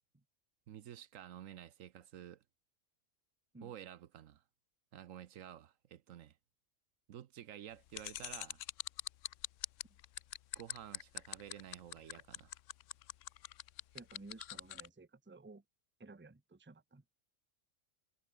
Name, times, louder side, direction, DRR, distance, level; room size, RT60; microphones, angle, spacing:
voice 1, 0.7-2.4 3.6-4.4 4.9-6.4 7.1-8.6 10.6-12.5, right 10 dB, 75° right, 1.1 m, -51 dB
sound 1, 7.9-14.9, left 14 dB, 70° left, 0.9 m, -43 dB
voice 2, 13.9-15.6 16.0-17.0, right 3 dB, 10° right, 0.9 m, -55 dB
omnidirectional pair, 1.4 m